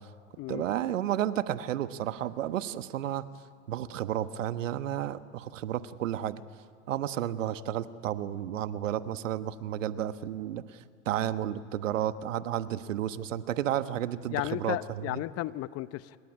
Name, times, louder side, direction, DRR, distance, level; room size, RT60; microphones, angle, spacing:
voice 1, 0.5-3.3 3.7-6.4 6.9-15.2, right 11 dB, 75° right, 1.3 m, -32 dB
voice 2, 14.3-16.2, left 16 dB, 40° left, 0.8 m, -34 dB
27.5 x 21.0 x 9.7 m
hypercardioid pair, 100°, 39 cm